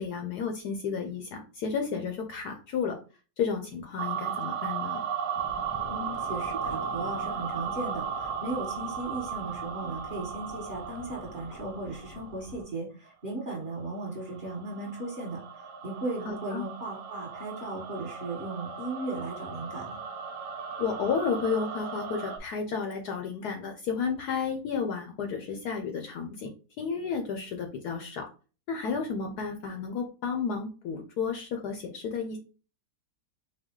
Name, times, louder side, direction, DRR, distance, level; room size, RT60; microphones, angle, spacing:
voice 1, 0.0-3.0 3.4-5.0 16.3-16.6 20.8-26.5 26.8-28.3 28.7-32.4, left 6 dB, 70° left, 4 dB, 1.0 m, -32 dB
sound 1, 4.0-12.6 13.7-22.4, right 7 dB, 70° right, 1.2 m, -36 dB
sound 2, 5.4-12.6, left 4 dB, 90° left, 1.3 m, -47 dB
voice 2, 5.9-20.0, right 2 dB, 30° right, -4 dB, 1.4 m, -36 dB
4.6 x 2.2 x 3.6 m, 0.35 s
omnidirectional pair, 2.0 m